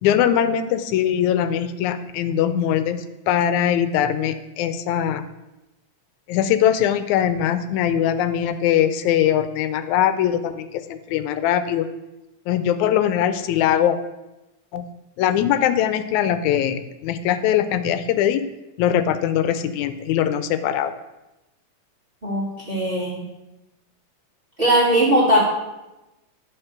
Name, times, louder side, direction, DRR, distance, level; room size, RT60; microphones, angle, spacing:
voice 1, 0.0-5.2 6.3-11.9 12.5-14.0 14.7-14.9 15.2-18.4 18.8-20.9, left 10 dB, 85° left, 11 dB, 2.0 m, -21 dB
voice 2, 22.2-23.2 24.6-25.4, right 1 dB, 25° right, -6 dB, 1.6 m, -19 dB
10.0 x 4.3 x 5.8 m, 0.99 s
omnidirectional pair, 3.3 m